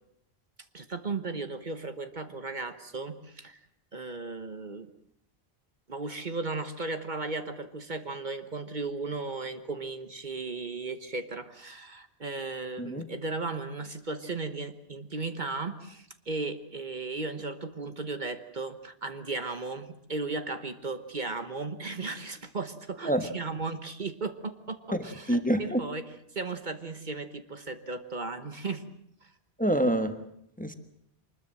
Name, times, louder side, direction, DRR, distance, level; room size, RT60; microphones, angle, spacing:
voice 1, 0.7-3.6 3.9-4.9 5.9-28.8 29.2-29.3, right 3 dB, 50° right, 9 dB, 1.3 m, -36 dB
voice 2, 25.3-25.8 29.6-30.2 30.6-30.7, right 1 dB, 10° left, 9 dB, 1.2 m, -26 dB
24.5 x 20.5 x 7.7 m, 0.73 s
omnidirectional pair, 1.1 m